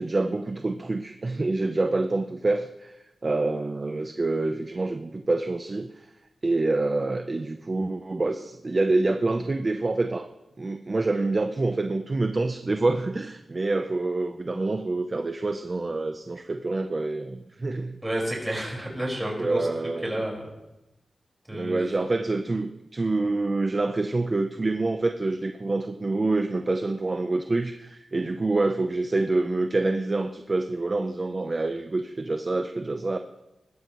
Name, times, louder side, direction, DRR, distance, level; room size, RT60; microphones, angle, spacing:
voice 1, 0.0-3.0 3.2-6.1 6.4-10.3 10.6-18.0 19.4-20.1 21.5-33.2, right 2 dB, 30° right, 7 dB, 0.6 m, -26 dB
voice 2, 18.0-19.7 20.0-20.4 21.5-21.8, right 1 dB, 10° right, -2 dB, 4.9 m, -30 dB
20.5 x 15.0 x 3.1 m, 0.98 s
wide cardioid pair, 135°, 0 cm